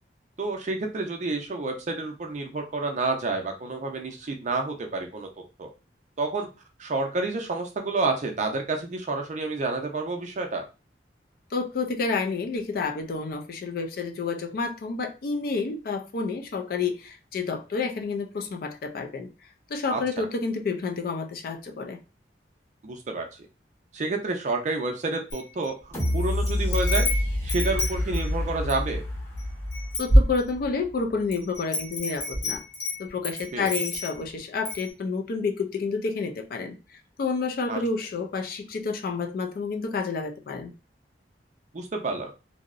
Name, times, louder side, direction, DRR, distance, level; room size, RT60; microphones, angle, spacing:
voice 1, 0.4-5.3 5.6-5.7 6.2-6.5 6.8-10.6 19.9-20.0 22.8-23.3 23.9-27.1 27.4-29.0 33.5-33.7 37.7-37.8 41.7-42.3, right 3 dB, 40° right, 0.5 m, -29 dB
voice 2, 11.5-19.3 19.7-22.0 30.0-32.6 33.0-40.7, left 4 dB, 55° left, 0.3 m, -29 dB
Wind chime, 25.3-26.1 26.5-28.9 29.4-29.5 29.7-30.8 31.3-34.3 34.6-34.9, equal, 90° left, 1.0 m, -26 dB
sound 1, 25.9-30.8 31.3-31.4, left 1 dB, 15° left, 0.9 m, -28 dB
2.7 x 2.0 x 2.4 m
head